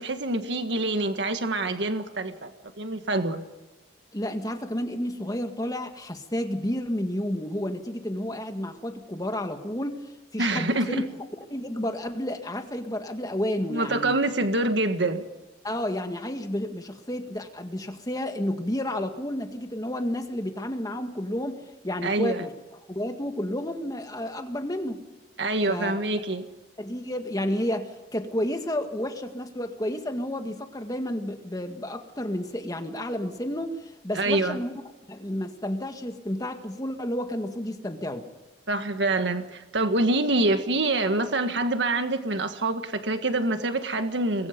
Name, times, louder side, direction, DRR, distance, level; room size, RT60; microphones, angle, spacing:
voice 1, 0.0-2.5 2.8-3.4 10.4-11.0 13.7-15.2 22.0-22.4 25.4-26.5 34.1-34.6 38.7-44.5, right 2 dB, 70° right, 7 dB, 1.7 m, -26 dB
voice 2, 4.1-11.0 11.5-14.1 15.6-22.5 22.9-25.0 25.7-26.0 26.8-34.7 35.1-38.3, left 1 dB, 20° left, 6 dB, 1.9 m, -31 dB
26.5 x 21.5 x 5.3 m, 1.1 s
head